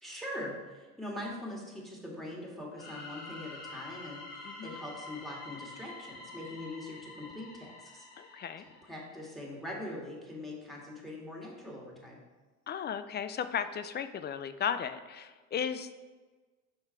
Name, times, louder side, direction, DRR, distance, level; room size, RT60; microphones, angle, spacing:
voice 1, 0.0-8.4 8.9-12.2, left 1 dB, ahead, -2 dB, 1.9 m, -42 dB
sound 1, 2.8-9.4, left 2 dB, 65° left, 2.1 m, -47 dB
voice 2, 4.4-4.7 8.2-8.7 12.7-15.9, left 8 dB, 25° left, 11 dB, 0.4 m, -35 dB
5.6 x 4.7 x 4.5 m, 1.3 s
hypercardioid pair, 65°, 40 cm